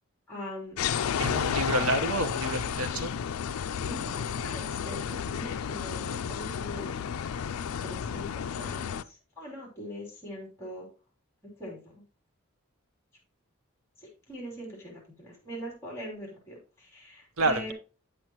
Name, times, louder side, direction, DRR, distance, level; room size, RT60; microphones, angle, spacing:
voice 1, 0.3-0.8 3.8-6.9 7.8-10.9 11.6-12.0 14.0-17.7, equal, 10° left, -2 dB, 3.0 m, -42 dB
sound 1, 0.8-9.0, left 7 dB, 85° left, 0.4 m, -32 dB
voice 2, 1.2-3.1 17.4-17.7, right 2 dB, 80° right, 10 dB, 0.9 m, -28 dB
8.4 x 7.7 x 2.9 m, 0.34 s
head